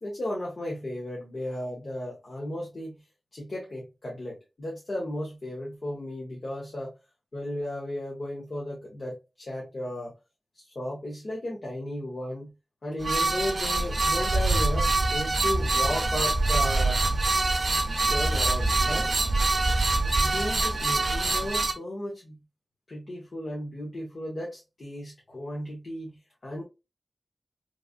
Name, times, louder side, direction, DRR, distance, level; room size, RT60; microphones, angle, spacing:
voice 1, 0.0-3.0 3.3-6.9 7.3-10.1 10.5-12.5 12.8-17.0 18.1-19.1 20.1-22.4 22.9-26.6, left 1 dB, 70° left, -3 dB, 1.0 m, -35 dB
sound 1, 13.0-21.7, right 3 dB, 65° right, 0.5 m, -26 dB
sound 2, 13.7-21.5, right 2 dB, 35° right, 0.9 m, -29 dB
3.2 x 2.5 x 2.3 m, 0.27 s
wide cardioid pair, 85°, 0 cm